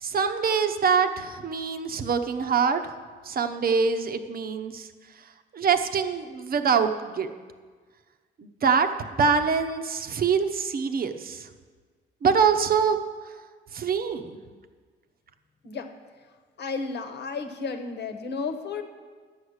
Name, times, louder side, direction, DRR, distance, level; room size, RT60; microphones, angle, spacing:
voice 1, 0.0-2.8 3.2-4.9 5.5-7.3 8.4-8.9 9.2-11.5 12.2-13.0 13.7-14.4, right 6 dB, 50° right, 8 dB, 0.9 m, -24 dB
voice 2, 16.6-18.8, left 4 dB, 60° left, 6 dB, 1.2 m, -32 dB
11.0 x 8.1 x 6.5 m, 1.5 s
cardioid pair, 90°, 20 cm